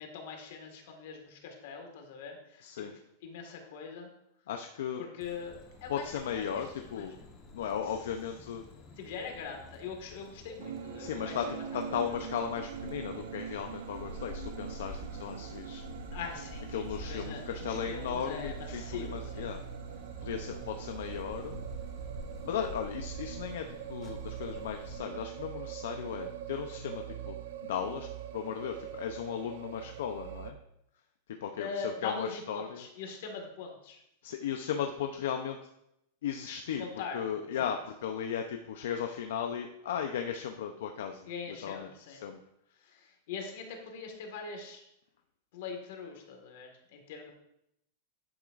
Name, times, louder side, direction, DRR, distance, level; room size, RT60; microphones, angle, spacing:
voice 1, 0.0-2.7 3.2-4.1 5.0-5.5 5.8-6.0 6.3-7.1 7.8-7.9 8.9-11.6 11.9-12.0 16.1-19.5 31.6-34.0 36.8-37.7 41.3-42.3 42.8-44.8 45.5-47.3, left 5 dB, 50° left, 3 dB, 1.8 m, -42 dB
voice 2, 2.6-2.9 4.5-5.0 5.9-7.2 7.5-8.6 11.0-11.5 11.7-15.8 16.7-19.6 20.2-21.6 22.4-27.4 27.6-28.1 28.3-30.6 31.4-32.8 34.2-35.6 36.2-36.9 37.1-42.4, left 8 dB, 70° left, 5 dB, 0.6 m, -36 dB
sound 1, 5.2-25.0, left 2 dB, 20° left, 1.1 m, -48 dB
sound 2, 10.6-30.5, right 9 dB, 70° right, 0.7 m, -42 dB
11.0 x 7.9 x 2.5 m, 0.80 s
supercardioid pair, 180°, 0 cm